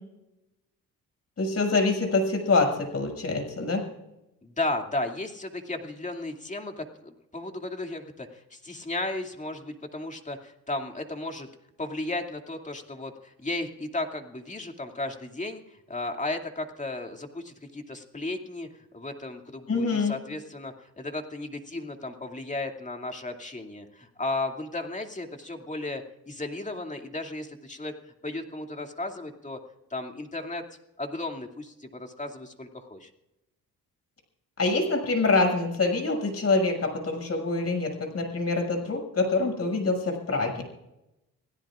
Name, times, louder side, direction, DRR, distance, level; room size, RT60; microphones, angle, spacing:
voice 1, 1.4-3.8 19.7-20.1 34.6-40.6, left 3 dB, 45° left, 4 dB, 6.6 m, -25 dB
voice 2, 4.4-11.5 11.8-18.7 18.9-27.9 28.2-29.6 29.9-30.6 31.0-33.1, left 2 dB, 20° left, 3 dB, 2.5 m, -34 dB
27.5 x 17.0 x 2.5 m, 0.91 s
cardioid pair, 70°, 35 cm